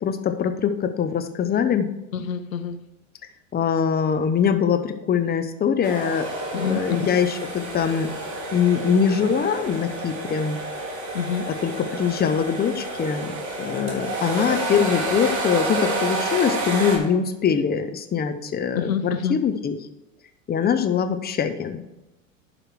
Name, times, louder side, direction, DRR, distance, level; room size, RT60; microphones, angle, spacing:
voice 1, 0.0-1.9 3.5-6.3 6.5-8.1 8.5-10.6 11.6-19.8 20.5-21.8, left 7 dB, 25° left, 7 dB, 1.0 m, -23 dB
voice 2, 2.1-2.8 6.5-7.1 11.1-11.4 18.8-19.4, left 6 dB, 85° left, 10 dB, 0.7 m, -27 dB
sound 1, 5.8-17.0, right 2 dB, 45° right, 3.5 m, -29 dB
11.5 x 5.0 x 4.7 m, 0.95 s
hypercardioid pair, 80°, 40 cm